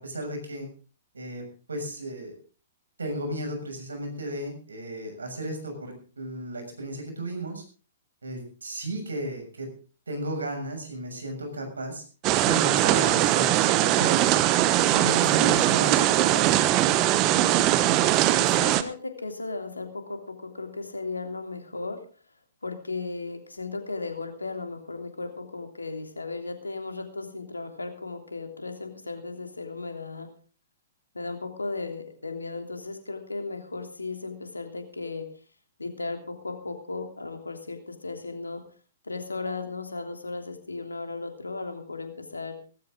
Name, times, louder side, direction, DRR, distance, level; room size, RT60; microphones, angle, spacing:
voice 1, 0.0-0.7 1.1-1.4 1.7-2.3 3.0-7.6 8.2-9.7 10.1-12.0 12.4-14.3 14.9-16.8, right 1 dB, 75° right, 4 dB, 6.7 m, -34 dB
sound 1, 12.2-18.8, right 14 dB, 30° right, 1.1 m, -21 dB
voice 2, 18.4-22.0 22.6-30.3 31.1-35.3 35.8-38.6 39.0-42.6, left 3 dB, 80° left, 5 dB, 3.2 m, -36 dB
18.0 x 15.0 x 3.8 m, 0.37 s
figure-of-eight pair, 115°, 0 cm